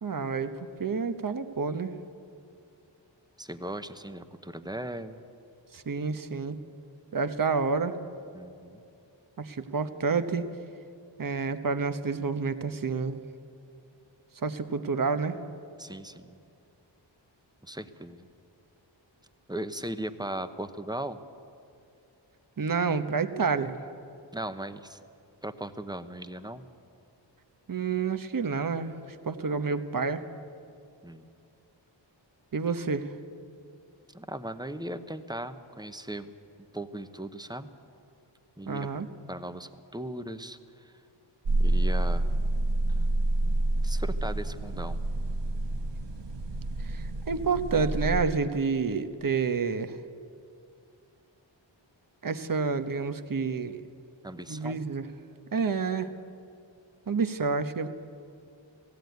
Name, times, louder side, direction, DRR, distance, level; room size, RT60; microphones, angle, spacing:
voice 1, 0.0-1.9 5.7-6.6 7.1-8.0 9.4-10.5 11.2-13.2 14.4-15.4 22.6-23.7 27.7-29.0 29.2-30.2 32.5-33.1 38.7-39.1 46.8-50.0 52.2-53.8 54.5-55.0 55.5-56.1 57.1-57.9, right 5 dB, 45° right, 9 dB, 1.1 m, -29 dB
voice 2, 3.4-5.2 8.3-8.8 15.8-16.4 17.6-18.3 19.5-21.2 24.3-25.0 25.4-26.7 31.0-31.3 34.1-36.3 36.7-37.7 38.6-38.9 39.3-40.9 41.6-42.3 43.0-43.1 43.8-45.0 54.2-54.8, right 1 dB, 10° right, 10 dB, 0.9 m, -38 dB
sound 1, 41.5-48.2, right 1 dB, 65° right, 1.2 m, -28 dB
18.0 x 15.5 x 9.4 m, 2.5 s
wide cardioid pair, 80°, 46 cm